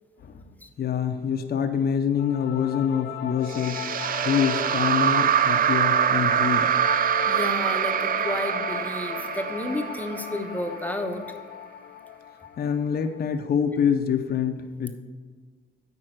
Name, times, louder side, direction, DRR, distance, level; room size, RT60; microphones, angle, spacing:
voice 1, 0.8-3.8 4.2-6.7 12.6-14.9, left 7 dB, 55° left, 6 dB, 0.7 m, -25 dB
sound 1, 2.2-13.3, left 11 dB, 90° left, 0.6 m, -37 dB
sound 2, 3.5-10.8, right 9 dB, 45° right, 0.4 m, -24 dB
voice 2, 7.0-11.2, left 1 dB, 10° left, 4 dB, 1.0 m, -31 dB
8.7 x 5.3 x 6.5 m, 1.5 s
cardioid pair, 90°, 20 cm